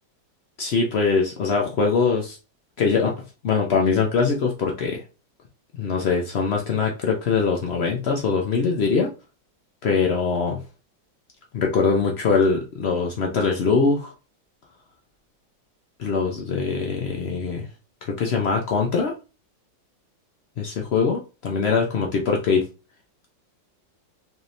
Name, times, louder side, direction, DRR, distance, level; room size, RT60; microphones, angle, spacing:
voice 1, 0.6-2.4 2.8-3.1 3.4-5.0 5.7-9.1 9.8-10.6 11.5-14.1 16.0-17.7 18.1-19.1 20.6-22.7, left 5 dB, 90° left, 0 dB, 0.5 m, -22 dB
4.4 x 3.1 x 2.6 m, 0.32 s
omnidirectional pair, 2.0 m